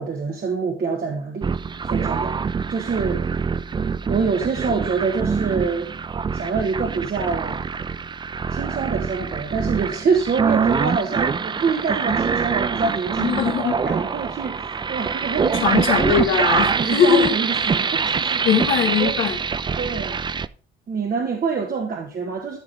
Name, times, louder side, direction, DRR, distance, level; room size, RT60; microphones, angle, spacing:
voice 1, 0.0-1.5 1.8-2.4 2.7-3.2 4.1-6.0 6.3-7.6 8.5-16.2 16.7-18.5 19.0-19.2 19.8-20.2 20.9-22.6, right 5 dB, 50° right, 1.5 m, -26 dB
sound 1, 1.4-20.5, right 5 dB, 25° right, 0.4 m, -24 dB
voice 2, 13.2-13.7 15.6-17.4 18.4-19.4, left 7 dB, 90° left, 1.5 m, -20 dB
13.0 x 4.8 x 3.5 m
cardioid pair, 90°, 20 cm